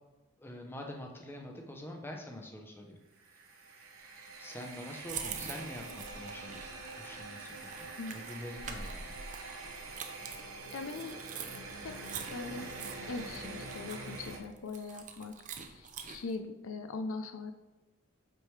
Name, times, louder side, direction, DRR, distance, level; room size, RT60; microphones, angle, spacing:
voice 1, 0.4-3.0 4.4-9.1, left 1 dB, 10° left, 1 dB, 0.7 m, -45 dB
sound 1, 3.1-14.4, right 3 dB, 80° right, 1.0 m, -45 dB
sound 2, 5.1-16.3, right 6 dB, 35° right, 0.5 m, -45 dB
voice 2, 10.7-11.2 11.8-12.7 13.1-15.3 15.7-17.5, left 3 dB, 80° left, 6 dB, 0.5 m, -41 dB
7.8 x 4.8 x 3.2 m, 1.1 s
head